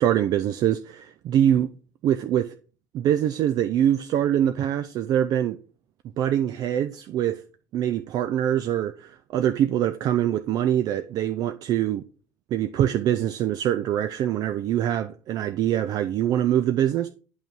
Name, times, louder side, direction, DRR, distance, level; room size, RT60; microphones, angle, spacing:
voice 1, 0.0-1.7 2.0-2.5 2.9-5.6 6.2-7.4 7.7-12.0 12.5-17.1, right 10 dB, 45° right, 0.4 m, -24 dB
8.4 x 3.8 x 4.6 m
figure-of-eight pair, 65°, 9 cm